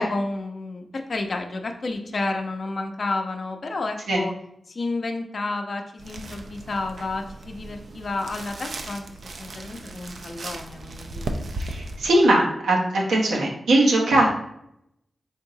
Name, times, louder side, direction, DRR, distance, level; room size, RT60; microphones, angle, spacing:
voice 1, 0.0-4.3 4.7-11.4, left 2 dB, 60° left, 4 dB, 0.6 m, -31 dB
sound 1, 6.0-12.1, right 2 dB, 70° right, 0.4 m, -36 dB
voice 2, 11.6-14.4, right 1 dB, 90° right, -2 dB, 0.9 m, -20 dB
3.8 x 3.6 x 2.7 m, 0.77 s
supercardioid pair, 40°, 0 cm